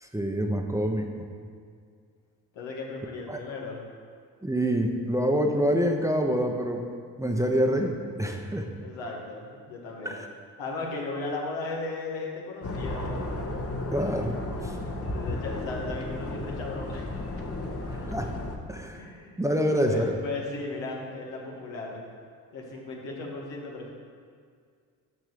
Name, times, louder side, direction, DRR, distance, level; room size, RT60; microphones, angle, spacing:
voice 1, 0.0-1.2 3.3-3.4 4.4-6.8 7.2-8.7 10.0-10.3 13.9-14.8 17.9-18.3 18.7-19.1 19.4-20.2, equal, 5° right, 2 dB, 1.1 m, -26 dB
voice 2, 2.5-3.8 8.8-10.2 10.6-13.3 15.1-17.1 18.9-19.4 19.9-22.0 22.5-23.9, left 3 dB, 70° left, -2 dB, 1.9 m, -36 dB
sound 1, 12.6-18.6, left 2 dB, 30° left, 1.4 m, -34 dB
6.8 x 6.1 x 7.0 m, 2.1 s
hypercardioid pair, 50°, 46 cm